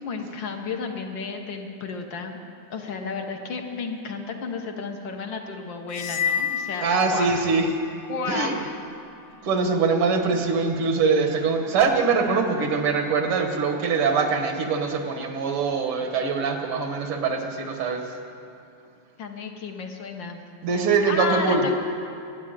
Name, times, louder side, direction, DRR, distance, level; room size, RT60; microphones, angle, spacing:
voice 1, 0.0-2.4 2.7-7.4 8.1-8.8 19.2-20.4 20.8-21.7, left 4 dB, 65° left, 3 dB, 1.6 m, -32 dB
sound 1, 5.9-7.8, left 7 dB, 90° left, 1.5 m, -29 dB
voice 2, 6.8-7.7 8.3-8.6 9.4-18.2 20.6-21.7, right 4 dB, 80° right, 4 dB, 2.2 m, -23 dB
12.0 x 9.6 x 9.0 m, 2.6 s
omnidirectional pair, 2.4 m